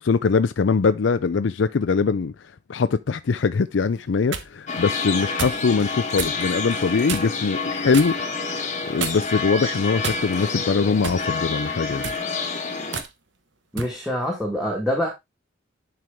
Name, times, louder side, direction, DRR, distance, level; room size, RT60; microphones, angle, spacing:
voice 1, 0.0-2.3 2.7-8.2 8.9-12.0, left 5 dB, 65° left, 0.4 m, -22 dB
sound 1, 3.9-4.5 5.4-5.6 6.2-6.4 7.1-7.4 7.9-8.2 9.0-9.4 10.0-10.5 11.0-11.3 11.9-12.2 12.9-13.1 13.8-14.0, right 6 dB, 65° right, 1.1 m, -30 dB
sound 2, 4.7-13.0, left 4 dB, 35° left, 1.2 m, -28 dB
voice 2, 13.7-15.1, equal, ahead, 1.7 m, -25 dB
11.0 x 4.6 x 3.5 m
head